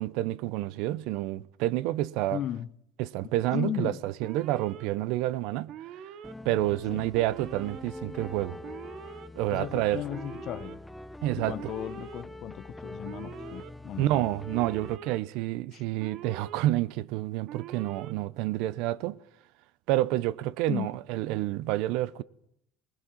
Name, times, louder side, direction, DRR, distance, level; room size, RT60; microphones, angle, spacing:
voice 1, 0.0-2.4 3.0-6.0 6.4-8.6 9.3-10.0 11.2-11.7 14.0-19.2 19.9-22.2, right 15 dB, 75° right, 0.7 m, -29 dB
voice 2, 2.3-2.7 3.5-4.0 6.9-7.1 9.5-10.8 11.4-14.2 15.7-15.8 20.7-20.9, left 12 dB, 50° left, 0.9 m, -36 dB
Alarm, 4.2-4.9 5.7-6.3 7.1-7.8 8.6-9.3 10.1-10.8 11.6-12.2 13.0-13.7 14.5-15.2 16.0-16.6 17.5-18.1, right 10 dB, 55° right, 1.2 m, -44 dB
sound 1, 6.2-15.0, left 2 dB, 5° left, 0.8 m, -44 dB
20.5 x 20.0 x 7.4 m
cardioid pair, 120°, 0 cm